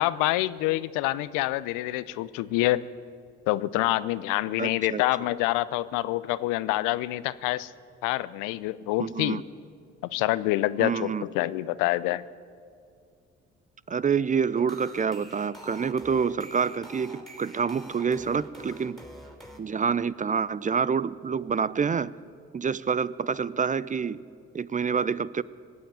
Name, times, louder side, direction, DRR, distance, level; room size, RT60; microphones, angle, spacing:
voice 1, 0.0-2.8 3.5-7.7 8.0-9.4 10.1-12.2, left 17 dB, 75° left, 17 dB, 0.5 m, -26 dB
voice 2, 4.6-5.0 9.0-9.4 10.8-11.2 13.9-19.1 19.6-22.1 22.5-24.2 24.5-25.4, right 6 dB, 25° right, 19 dB, 0.4 m, -27 dB
sound 1, 14.6-19.6, right 1 dB, ahead, 3.2 m, -46 dB
19.5 x 7.8 x 8.9 m, 2.2 s
hypercardioid pair, 45°, 32 cm